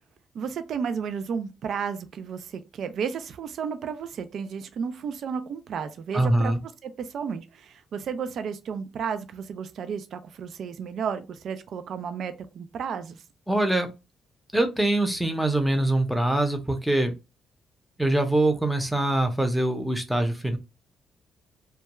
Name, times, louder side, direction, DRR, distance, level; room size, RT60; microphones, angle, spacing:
voice 1, 0.3-13.2, right 6 dB, 65° right, 0.3 m, -33 dB
voice 2, 6.1-6.6 13.5-13.9 14.5-17.1 18.0-20.6, right 1 dB, ahead, 0.6 m, -23 dB
2.2 x 2.2 x 2.9 m
cardioid pair, 90°, 0 cm